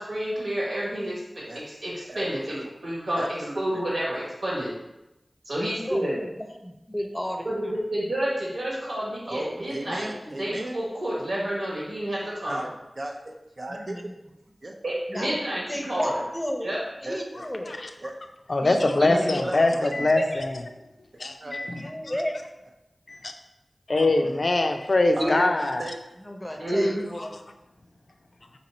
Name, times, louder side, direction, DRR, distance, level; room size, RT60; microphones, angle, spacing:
voice 1, 0.0-2.6 2.8-3.2 3.5-4.7 5.4-6.2 7.4-10.1 10.4-12.6 14.8-16.1 16.6-16.8 19.0-19.3 25.2-25.4 26.6-27.1, right 1 dB, 90° right, -6 dB, 1.4 m, -29 dB
voice 2, 2.1-2.7 3.1-3.8 9.3-10.8 12.5-12.7 13.0-14.0 14.6-14.7 15.1-15.2 17.0-17.4 18.0-18.1 19.1-20.1 21.4-21.6 24.3-24.4 25.2-25.4 25.7-26.0, right 1 dB, 60° right, 1 dB, 0.4 m, -36 dB
voice 3, 5.8-7.5 13.7-14.1 15.1-15.4 15.7-16.7 17.0-17.7 18.6-18.8 19.4-19.7 20.2-20.4 21.4-22.3 26.2-27.3, equal, 15° left, 1 dB, 0.6 m, -33 dB
voice 4, 18.5-20.6 21.2-21.8 23.1-23.3 23.9-25.8 27.2-27.3, left 2 dB, 70° left, 5 dB, 0.4 m, -23 dB
2.9 x 2.8 x 4.1 m, 0.94 s
cardioid pair, 40°, 0 cm